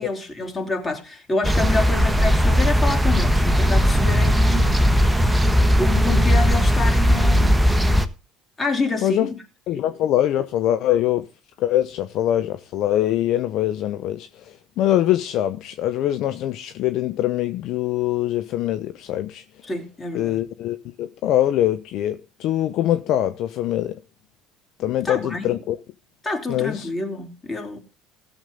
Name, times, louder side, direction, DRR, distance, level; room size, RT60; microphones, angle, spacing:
voice 1, 0.0-4.7 5.8-7.6 8.6-9.4 9.7-9.8 19.6-20.4 24.9-25.6 26.2-27.8, left 2 dB, 20° left, 4.0 m, -27 dB
sound 1, 1.4-8.1, equal, 5° right, 1.3 m, -18 dB
voice 2, 9.7-11.3 11.6-19.4 20.1-24.0 24.8-25.8 26.5-26.9, left 12 dB, 60° left, 0.7 m, -23 dB
16.5 x 7.2 x 3.8 m
hypercardioid pair, 65°, 0 cm